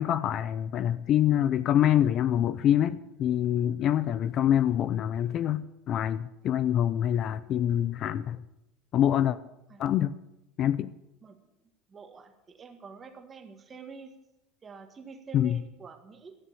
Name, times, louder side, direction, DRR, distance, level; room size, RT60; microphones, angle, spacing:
voice 1, 0.0-8.4 8.9-9.4 9.8-10.2 10.6-10.9 15.3-15.6, left 10 dB, 40° left, 16 dB, 0.4 m, -25 dB
voice 2, 11.9-14.1 14.6-16.4, right 5 dB, 20° right, 6 dB, 1.6 m, -47 dB
14.0 x 6.7 x 8.5 m, 0.91 s
supercardioid pair, 140°, 0 cm